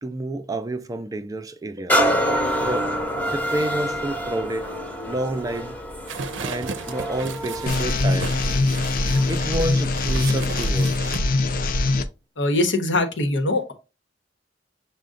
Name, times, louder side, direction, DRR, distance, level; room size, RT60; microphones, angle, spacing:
voice 1, 0.0-2.9 3.3-4.7 5.1-5.8 6.4-8.3 9.3-11.2, right 1 dB, 20° right, 0.4 m, -29 dB
sound 1, 1.9-9.5 10.1-10.2, equal, 10° left, 0.8 m, -27 dB
sound 2, 6.1-11.2, right 5 dB, 90° right, 0.5 m, -35 dB
sound 3, 7.7-12.0, left 2 dB, 50° left, 0.4 m, -22 dB
voice 2, 12.4-13.7, left 2 dB, 90° left, 0.9 m, -22 dB
6.4 x 2.1 x 3.7 m
head